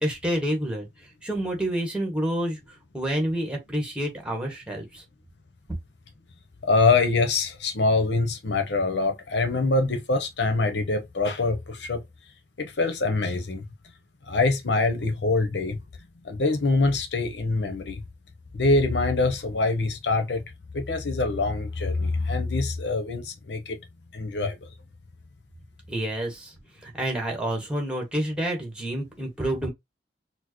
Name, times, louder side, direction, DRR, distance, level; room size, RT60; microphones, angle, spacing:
voice 1, 0.0-0.9 1.2-2.6 2.9-5.0 25.9-26.5 26.8-29.7, right 1 dB, 5° right, 1.1 m, -28 dB
voice 2, 6.6-12.0 12.6-13.6 14.3-15.8 16.2-18.0 18.5-20.4 20.7-23.8 24.1-24.5, left 3 dB, 80° left, 0.8 m, -24 dB
4.3 x 2.0 x 3.0 m
head